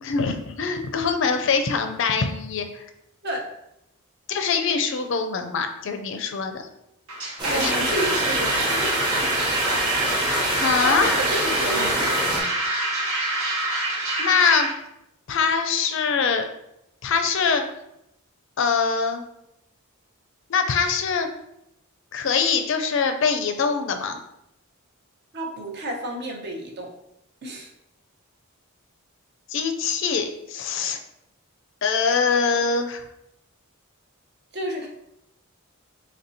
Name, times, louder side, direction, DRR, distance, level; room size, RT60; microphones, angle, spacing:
voice 1, 0.0-2.8 4.3-6.6 7.5-7.9 10.6-11.2 14.2-14.7 15.3-16.5 17.0-17.6 18.6-19.2 20.5-21.3 22.1-24.2 29.5-31.0 31.8-33.0, left 5 dB, 60° left, 7 dB, 0.4 m, -23 dB
sound 1, 7.1-14.7, right 2 dB, 75° right, 1.0 m, -26 dB
sound 2, 7.4-12.4, equal, 20° right, 0.9 m, -27 dB
voice 2, 7.4-8.7 10.8-12.5 25.3-26.9 27.4-27.7 34.5-34.9, right 1 dB, 50° right, 1 dB, 0.7 m, -30 dB
4.2 x 3.1 x 2.7 m, 0.82 s
head